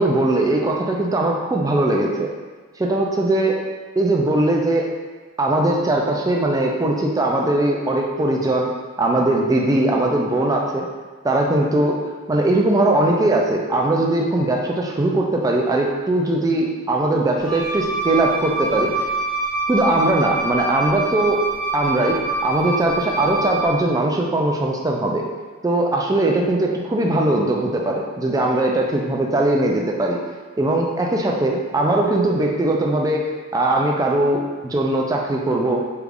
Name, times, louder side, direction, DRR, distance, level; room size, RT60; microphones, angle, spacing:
voice 1, 0.0-2.3 2.8-3.6 4.0-4.9 5.4-8.7 9.0-10.9 11.2-12.0 12.3-19.1 19.7-21.4 21.7-25.3 25.6-30.2 30.6-33.2 33.5-35.8, right 2 dB, 15° right, 0 dB, 0.3 m, -20 dB
Wind instrument woodwind instrument, 17.4-23.7, right 3 dB, 40° left, 1.1 m, -25 dB
3.3 x 2.4 x 3.4 m, 1.4 s
head